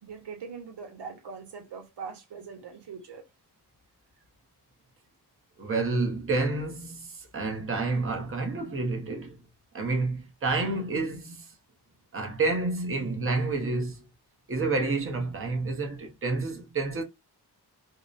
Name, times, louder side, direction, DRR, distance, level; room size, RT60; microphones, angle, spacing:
voice 1, 0.0-3.3, right 5 dB, 85° right, 0.9 m, -42 dB
voice 2, 5.6-9.4 9.7-11.5 12.1-14.0 14.5-17.0, right 3 dB, 35° right, 0.8 m, -29 dB
2.8 x 2.0 x 2.4 m
wide cardioid pair, 130°, 40 cm